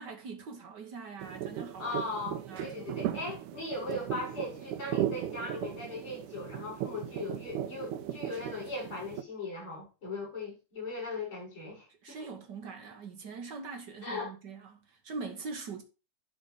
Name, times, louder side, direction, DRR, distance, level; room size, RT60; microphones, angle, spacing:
voice 1, 0.0-2.0 2.3-3.0 12.0-15.8, right 4 dB, 60° right, 1.1 m, -43 dB
sound 1, 1.2-9.2, right 11 dB, 85° right, 2.1 m, -37 dB
voice 2, 1.8-12.3 14.0-14.3, left 3 dB, 40° left, 6.5 m, -39 dB
11.5 x 4.1 x 4.9 m
omnidirectional pair, 3.5 m